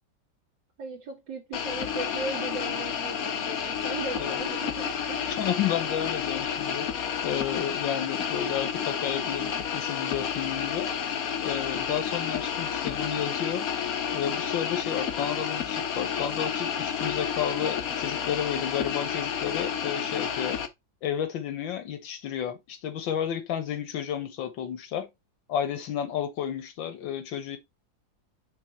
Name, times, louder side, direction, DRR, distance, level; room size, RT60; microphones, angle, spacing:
voice 1, 0.8-5.3, right 4 dB, 65° right, 2.5 m, -37 dB
sound 1, 1.5-20.7, left 8 dB, 60° left, 1.2 m, -30 dB
voice 2, 5.2-6.9 7.2-10.9 11.4-13.7 14.1-20.6 21.0-25.1 25.5-27.6, left 9 dB, 80° left, 1.8 m, -31 dB
6.2 x 3.5 x 4.5 m
omnidirectional pair, 2.0 m